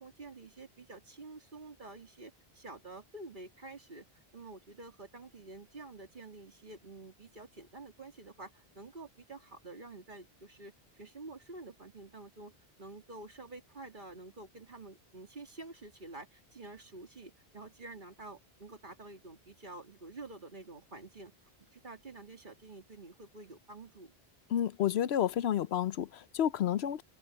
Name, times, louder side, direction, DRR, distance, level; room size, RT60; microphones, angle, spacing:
voice 1, 0.0-4.0 4.3-12.5 12.8-21.3 21.7-24.1, right 2 dB, 50° right, 2.6 m, -49 dB
voice 2, 24.5-27.0, left 10 dB, 80° left, 0.9 m, -30 dB
omnidirectional pair, 1.0 m